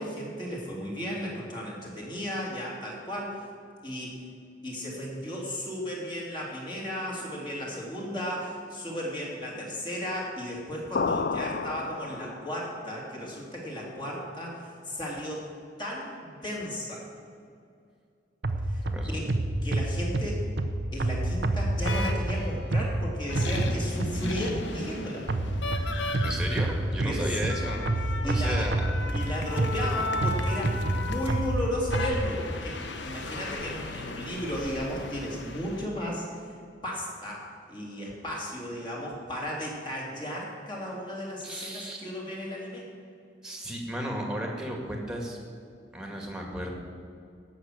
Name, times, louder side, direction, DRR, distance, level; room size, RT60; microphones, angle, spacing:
voice 1, 0.0-3.5 3.8-4.1 4.6-15.5 15.8-17.0 18.7-18.8 19.1-19.3 19.6-20.4 20.9-25.2 27.0-27.4 28.2-28.7 29.1-36.5 36.8-42.8, equal, 25° left, -3 dB, 2.8 m, -35 dB
sound 1, 10.9-12.7, left 4 dB, 60° left, 0.5 m, -30 dB
sound 2, 18.4-24.5 25.3-32.1, right 1 dB, 75° right, 0.9 m, -28 dB
voice 2, 18.8-19.2 26.2-27.9 28.2-28.9 41.4-42.0 43.4-45.4 45.9-46.7, equal, 5° right, 1 dB, 2.0 m, -34 dB
sound 3, 21.9-22.7 23.3-35.9, left 3 dB, 85° left, 1.1 m, -36 dB
17.0 x 6.3 x 7.6 m, 2.4 s
head